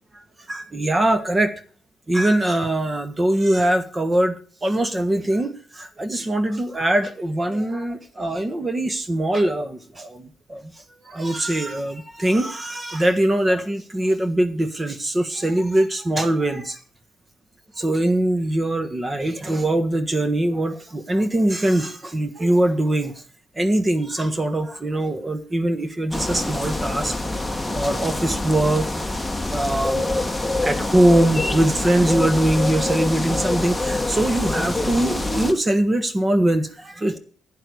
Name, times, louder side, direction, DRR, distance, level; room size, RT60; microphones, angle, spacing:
voice 1, 0.5-1.5 2.1-10.7 11.0-16.8 17.8-23.1 23.6-27.2 27.7-28.9 29.5-30.1 30.6-37.2, right 1 dB, 20° right, 10 dB, 1.5 m, -22 dB
sound 1, 26.1-35.5, left 2 dB, 5° left, 1.4 m, -25 dB
11.5 x 8.9 x 6.5 m, 0.42 s
cardioid pair, 90°, 0 cm